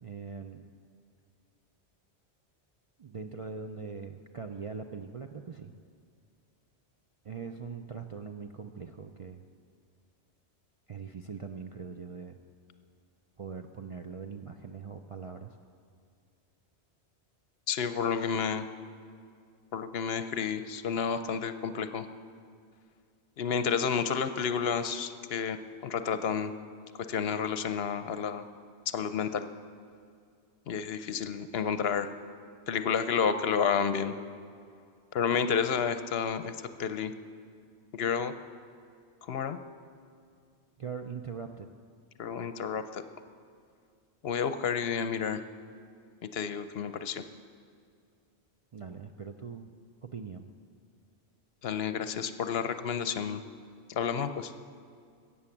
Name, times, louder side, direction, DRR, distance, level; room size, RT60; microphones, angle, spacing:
voice 1, 0.0-0.7 3.0-5.7 7.2-9.4 10.9-12.4 13.4-15.6 40.8-41.7 48.7-49.7 50.0-50.5, right 5 dB, 45° right, 5 dB, 0.4 m, -41 dB
voice 2, 17.7-18.7 19.7-22.1 23.4-25.6 25.8-26.5 27.1-28.4 28.9-29.5 30.7-32.1 32.7-34.1 35.1-37.1 37.9-38.3 39.3-39.6 42.2-43.0 44.2-45.4 46.3-47.2 51.6-53.4 53.9-54.5, left 7 dB, 65° left, 11 dB, 0.8 m, -30 dB
14.5 x 8.6 x 7.2 m, 2.2 s
omnidirectional pair, 1.1 m